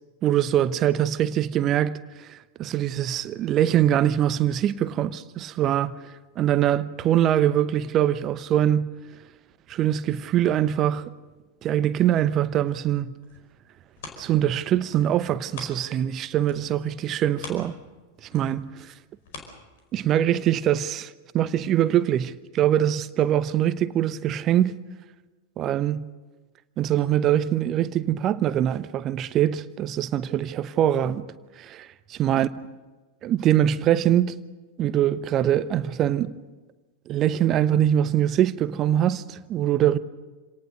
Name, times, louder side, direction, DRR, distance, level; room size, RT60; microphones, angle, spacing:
voice 1, 0.2-8.9 9.7-11.1 11.6-13.1 14.2-17.8 18.2-18.9 19.9-24.7 25.6-26.1 26.8-31.3 31.6-32.5 33.2-34.3 34.8-36.4 37.1-40.0, right 11 dB, 30° right, 0.8 m, -23 dB
sound 1, 13.2-16.1 16.4-20.2 20.7-20.8, left 4 dB, 55° left, 5.0 m, -45 dB
27.5 x 18.5 x 6.6 m
figure-of-eight pair, 90°, 0 cm